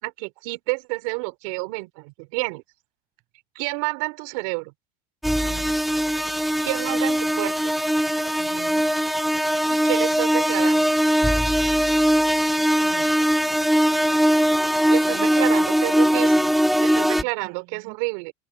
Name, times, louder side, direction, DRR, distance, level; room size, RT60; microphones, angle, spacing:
voice 1, 0.0-2.6 3.5-4.7 6.6-7.7 9.7-10.9 14.9-16.5 16.8-18.3, right 30 dB, 70° right, 4.3 m, -29 dB
sound 1, 5.2-17.2, equal, ahead, 0.5 m, -21 dB
voice 2, 5.3-5.8 8.4-8.9 12.8-13.1 15.0-15.5 17.2-18.0, right 23 dB, 55° right, 7.8 m, -44 dB
cardioid pair, 150°, 17 cm